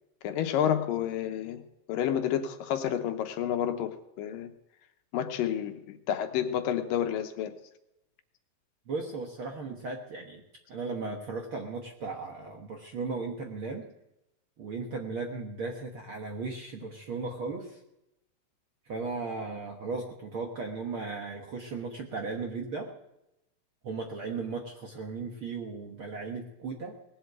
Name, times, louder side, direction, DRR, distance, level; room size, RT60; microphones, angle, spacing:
voice 1, 0.2-4.5 5.1-7.6, left 10 dB, 80° left, 7 dB, 2.6 m, -30 dB
voice 2, 8.9-10.4 10.7-13.8 14.6-17.8 18.9-22.9 23.8-26.9, right 4 dB, 60° right, 1 dB, 1.5 m, -36 dB
19.0 x 7.9 x 7.9 m, 0.87 s
omnidirectional pair, 4.0 m